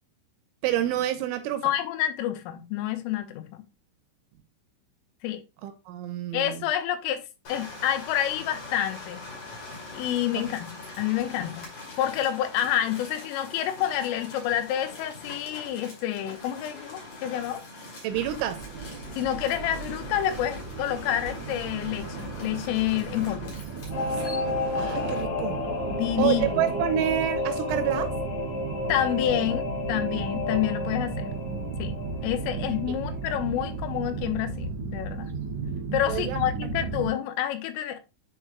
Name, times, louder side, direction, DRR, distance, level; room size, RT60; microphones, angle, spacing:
voice 1, 0.6-1.7 5.6-6.7 18.0-18.6 24.7-25.6 26.2-28.1 36.1-36.4, right 12 dB, 80° right, 3.0 m, -28 dB
voice 2, 1.6-3.6 5.2-5.4 6.3-7.2 7.5-9.2 9.9-10.7 11.0-11.7 12.0-17.6 19.1-23.5 25.9-26.7 28.9-31.3 31.8-31.9 32.2-35.3 35.9-38.0, left 11 dB, 85° left, 3.3 m, -28 dB
sound 1, 7.4-25.2, left 2 dB, 45° left, 3.2 m, -42 dB
sound 2, 18.1-37.1, right 4 dB, 55° right, 1.7 m, -35 dB
Singing / Musical instrument, 23.9-33.9 34.3-34.4, left 3 dB, 65° left, 4.7 m, -32 dB
10.0 x 4.6 x 2.3 m
omnidirectional pair, 5.9 m